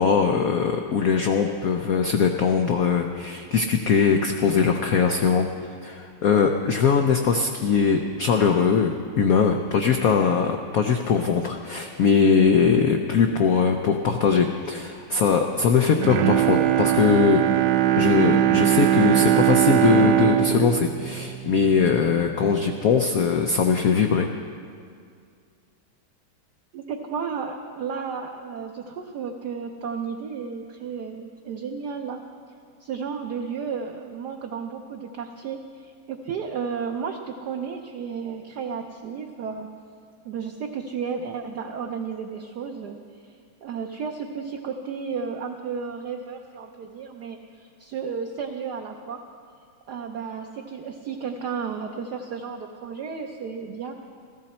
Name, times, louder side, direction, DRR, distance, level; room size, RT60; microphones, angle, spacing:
voice 1, 0.0-5.5 5.8-17.4 18.0-24.3, left 6 dB, 90° left, 4 dB, 0.7 m, -21 dB
Bowed string instrument, 15.9-22.2 22.6-22.7, right 13 dB, 90° right, 0.9 m, -21 dB
voice 2, 26.7-32.2 32.8-39.7 40.2-49.2 49.9-54.0, right 6 dB, 65° right, 3 dB, 1.1 m, -33 dB
14.5 x 14.5 x 4.3 m, 2.2 s
omnidirectional pair, 2.3 m